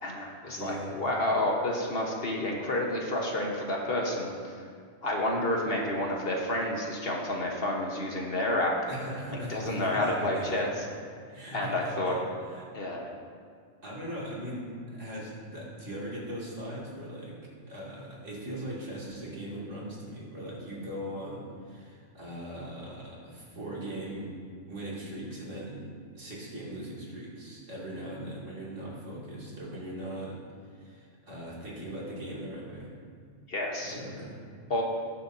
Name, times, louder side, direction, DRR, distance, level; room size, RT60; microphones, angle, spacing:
voice 1, 0.0-4.6 5.0-8.8 9.3-10.7 11.5-12.1 12.7-13.1 33.5-34.0 34.7-34.8, left 1 dB, 50° left, -1 dB, 1.4 m, -30 dB
voice 2, 0.5-0.9 8.9-10.7 11.3-12.7 13.8-24.3 24.7-30.4 30.7-32.9 33.8-34.4, right 1 dB, 75° right, -6 dB, 2.9 m, -39 dB
19.5 x 7.1 x 2.7 m, 2.1 s
omnidirectional pair, 1.3 m